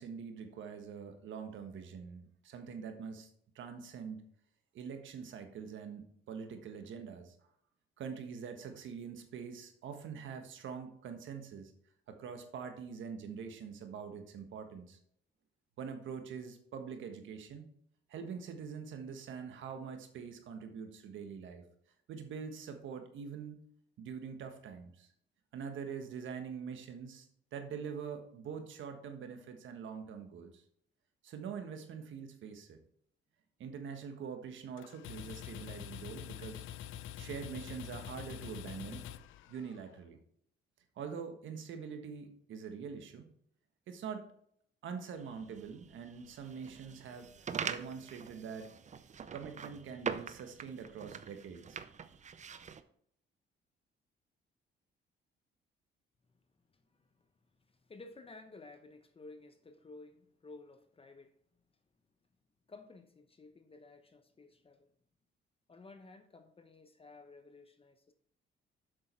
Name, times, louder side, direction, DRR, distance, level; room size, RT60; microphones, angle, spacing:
voice 1, 0.0-3.3 3.5-4.2 4.7-7.3 8.0-11.7 12.1-15.0 15.8-17.7 18.1-21.6 22.1-23.6 24.0-25.1 25.5-30.6 31.2-32.8 33.6-36.6 37.2-39.1 39.5-40.2 41.0-43.3 43.9-44.3 44.8-47.3 47.6-48.7 49.3-51.8, right 6 dB, 75° right, 6 dB, 1.4 m, -44 dB
sound 1, 34.8-40.0, left 10 dB, 85° left, 0.5 m, -46 dB
sound 2, 45.2-52.8, right 6 dB, 35° right, 0.6 m, -43 dB
voice 2, 56.7-57.3 57.7-61.3 62.7-64.9 65.7-68.1, left 3 dB, 30° left, 8 dB, 0.9 m, -54 dB
7.7 x 6.4 x 4.5 m, 0.67 s
cardioid pair, 90°, 20 cm